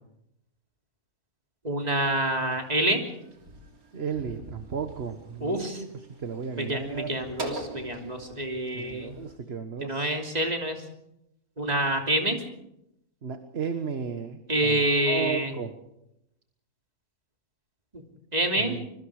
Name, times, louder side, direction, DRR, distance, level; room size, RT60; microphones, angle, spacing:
voice 1, 1.6-3.0 5.4-5.8 6.6-9.1 9.8-10.8 11.6-12.4 14.5-15.5 17.9-18.0 18.3-18.8, right 1 dB, 25° right, 3 dB, 3.2 m, -27 dB
sound 1, 2.3-9.4, right 2 dB, 70° right, 3.5 m, -43 dB
voice 2, 3.9-7.1 8.7-10.1 13.2-15.7 18.6-18.9, right 6 dB, 45° right, 7 dB, 1.5 m, -34 dB
25.5 x 23.0 x 5.0 m, 0.82 s
omnidirectional pair, 1.6 m